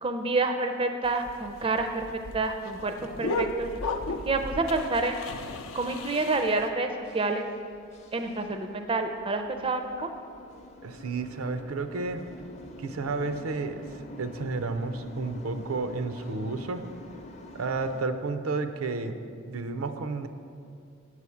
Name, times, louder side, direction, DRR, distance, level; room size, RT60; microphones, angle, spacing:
voice 1, 0.0-3.7 4.2-5.3 5.7-7.5 8.1-10.1, right 3 dB, 25° right, 6 dB, 0.4 m, -28 dB
sound 1, 1.0-6.7, left 2 dB, 75° left, 0.5 m, -35 dB
sound 2, 5.2-18.0, left 1 dB, 30° left, 0.6 m, -47 dB
voice 2, 10.8-12.2 12.8-13.8 14.2-16.8 17.5-19.1 19.5-20.3, right 3 dB, 90° right, 9 dB, 0.5 m, -31 dB
8.4 x 4.8 x 7.0 m, 2.4 s
head